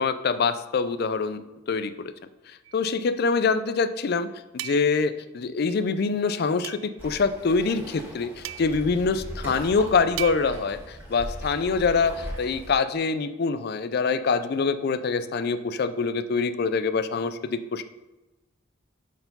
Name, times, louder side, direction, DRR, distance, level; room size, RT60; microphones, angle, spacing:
voice 1, 0.0-2.1 2.5-4.3 4.6-17.8, left 4 dB, 50° left, 12 dB, 0.4 m, -25 dB
sound 1, 2.6-2.9 4.6-5.1 6.6-7.0 8.4-8.9 10.2-10.7, right 13 dB, 80° right, 0.3 m, -37 dB
Waves surf, 7.0-12.7, equal, 10° right, 1.8 m, -39 dB
5.7 x 4.6 x 5.4 m, 1.1 s
head